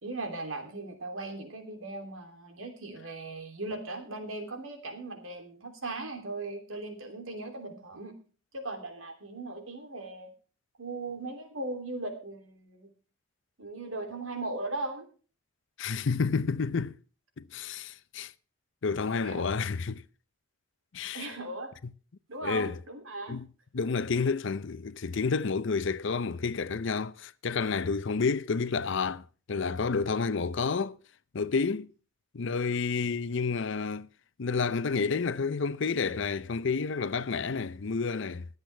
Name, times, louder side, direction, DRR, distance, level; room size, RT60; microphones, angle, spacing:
voice 1, 0.0-8.1 8.5-10.3 10.8-12.9 13.6-15.1 19.2-19.4 21.1-21.7 22.3-23.4, right 2 dB, 80° right, 3.0 m, -38 dB
voice 2, 15.8-17.0 17.4-18.3 18.8-20.0 20.9-21.3 22.4-22.8 23.3-23.5 23.7-31.0 31.3-31.9 32.3-34.1 34.4-38.5, left 5 dB, 60° left, 0.6 m, -30 dB
22.0 x 8.1 x 3.3 m
head